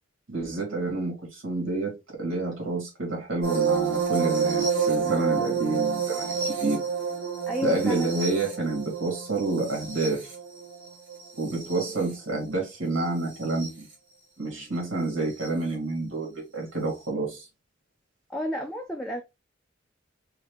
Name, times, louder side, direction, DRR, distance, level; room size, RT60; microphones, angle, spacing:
voice 1, 0.3-6.8 7.6-10.3 11.4-13.9 14.4-17.5, right 2 dB, 85° right, 2.5 m, -29 dB
sound 1, 3.4-12.1 13.4-13.7 15.4-15.5, right 6 dB, 65° right, 2.4 m, -29 dB
voice 2, 5.0-5.5 7.5-8.1 18.3-19.2, equal, ahead, 0.6 m, -32 dB
4.7 x 2.8 x 3.3 m
head